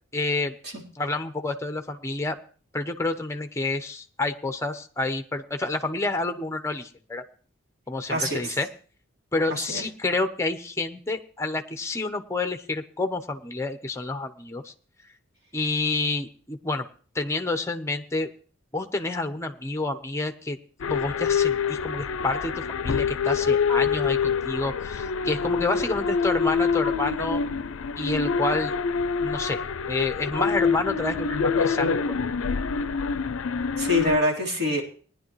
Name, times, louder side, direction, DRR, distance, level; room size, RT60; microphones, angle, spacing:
voice 1, 0.1-0.5 1.0-2.4 2.7-7.2 7.9-8.7 9.3-14.7 15.5-16.9 17.1-18.3 18.7-20.6 20.9-22.5 22.8-27.4 28.0-28.7 29.2-29.6 29.9-31.9, left 2 dB, 15° left, 6 dB, 0.8 m, -29 dB
voice 2, 8.1-8.5 9.5-9.8 33.8-34.8, left 1 dB, 55° right, -2 dB, 3.7 m, -25 dB
sound 1, 20.8-34.2, left 5 dB, 90° left, 0.5 m, -26 dB
19.5 x 10.5 x 3.1 m, 0.41 s
head